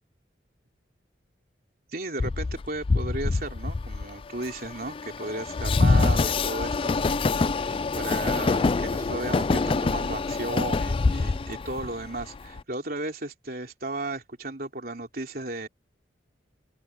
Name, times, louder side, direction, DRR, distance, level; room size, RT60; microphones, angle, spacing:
voice 1, 1.9-7.3 7.5-15.7, right 2 dB, 50° right, 3.6 m, -35 dB
Train, 2.2-12.6, left 3 dB, 30° left, 0.3 m, -25 dB
open air
head